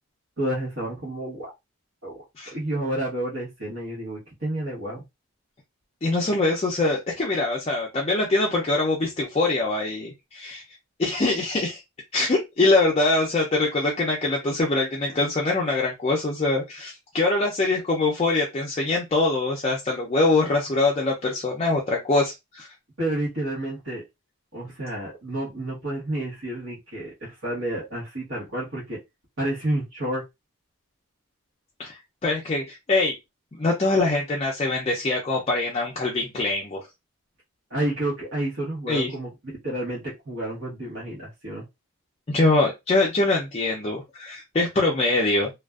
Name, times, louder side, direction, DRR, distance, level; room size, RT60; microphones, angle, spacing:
voice 1, 0.4-1.5 2.0-2.2 2.5-5.0 23.0-24.0 24.5-29.0 29.4-30.2 37.7-39.3 39.6-41.6 42.4-42.5, right 1 dB, 60° right, -7 dB, 1.0 m, -30 dB
voice 2, 6.0-10.6 11.0-11.8 12.1-22.7 31.8-33.1 33.6-36.8 38.9-39.1 42.3-45.5, left 2 dB, 30° left, -2 dB, 0.4 m, -23 dB
2.4 x 2.2 x 2.3 m, 0.21 s
head